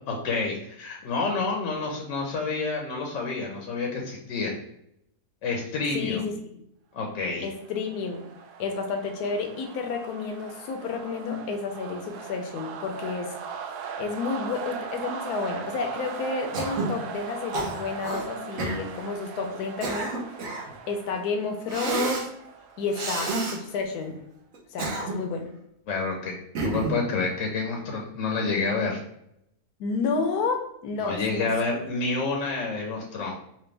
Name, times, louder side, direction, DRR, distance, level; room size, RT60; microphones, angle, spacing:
voice 1, 0.1-4.5 5.4-6.2 6.9-7.5 25.9-26.3 26.6-29.0 31.0-33.3, left 4 dB, 65° left, 0 dB, 0.9 m, -28 dB
voice 2, 5.9-6.4 7.4-8.3 8.6-13.4 14.0-20.2 20.9-22.2 22.8-24.2 24.7-25.5 29.8-31.5, left 4 dB, 80° left, 3 dB, 1.1 m, -31 dB
sound 1, 7.3-24.0, right 6 dB, 85° right, 1.1 m, -40 dB
Cough, 16.5-17.0 17.5-18.2 18.6-18.8 19.5-20.7 21.7-22.3 22.9-23.6 24.5-25.4 26.5-27.0, right 3 dB, 60° right, 1.2 m, -29 dB
4.2 x 2.2 x 3.2 m, 0.77 s
omnidirectional pair, 1.6 m